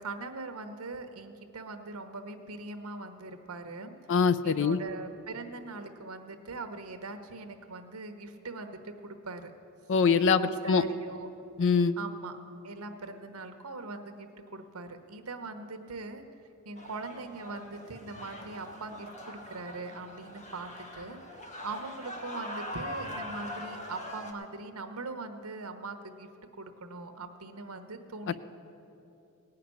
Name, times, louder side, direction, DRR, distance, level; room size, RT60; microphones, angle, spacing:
voice 1, 0.0-3.9 4.4-9.5 10.1-11.3 12.0-12.4 12.6-16.2 16.6-26.3 26.6-28.4, right 3 dB, 80° right, 7 dB, 1.0 m, -41 dB
voice 2, 4.1-4.8 9.9-10.8 11.6-12.0, left 5 dB, 60° left, 14 dB, 0.5 m, -23 dB
sound 1, 16.8-24.3, left 1 dB, 35° left, 1.2 m, -42 dB
17.5 x 5.8 x 9.6 m, 2.8 s
head